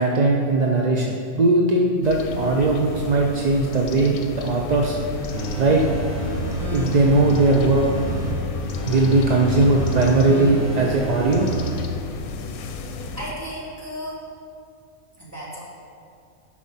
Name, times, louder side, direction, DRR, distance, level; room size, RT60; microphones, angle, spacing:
voice 1, 0.0-5.0 5.6-5.9 6.7-7.9 8.8-11.5, right 2 dB, 50° right, -1 dB, 0.5 m, -19 dB
sound 1, 2.0-13.3, left 4 dB, 85° left, 1.1 m, -34 dB
sound 2, 4.7-9.9, left 3 dB, 40° left, 1.4 m, -34 dB
sound 3, 5.3-8.3 8.7-11.8 12.2-12.3, right 2 dB, 25° left, 1.5 m, -30 dB
voice 2, 13.1-14.3 15.2-15.6, equal, 10° right, -8 dB, 2.4 m, -34 dB
10.5 x 4.9 x 5.7 m, 2.4 s
omnidirectional pair, 1.5 m